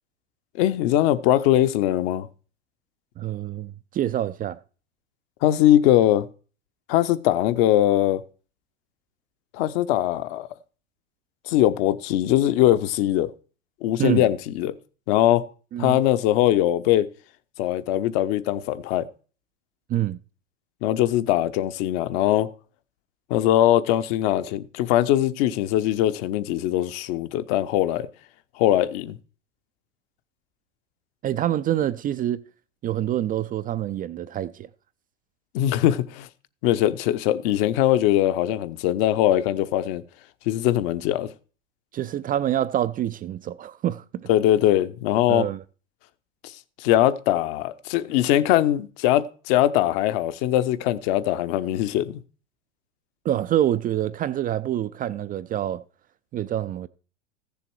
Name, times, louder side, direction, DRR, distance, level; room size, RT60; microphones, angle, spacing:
voice 1, 0.6-2.3 5.4-6.3 6.9-8.2 9.5-10.5 11.5-13.3 13.8-14.7 15.1-15.4 15.8-17.1 17.6-19.1 20.8-22.5 23.3-28.1 28.6-29.2 35.5-36.3 36.6-40.0 40.5-41.3 44.3-45.5 46.8-52.2, left 13 dB, 50° left, 1.1 m, -21 dB
voice 2, 3.2-4.6 14.0-14.3 15.7-16.0 19.9-20.2 31.2-32.4 32.8-34.7 41.9-44.3 45.3-45.6 53.2-55.8 56.3-56.9, right 12 dB, 25° right, 0.5 m, -26 dB
15.0 x 6.9 x 4.6 m
hypercardioid pair, 90°, 36 cm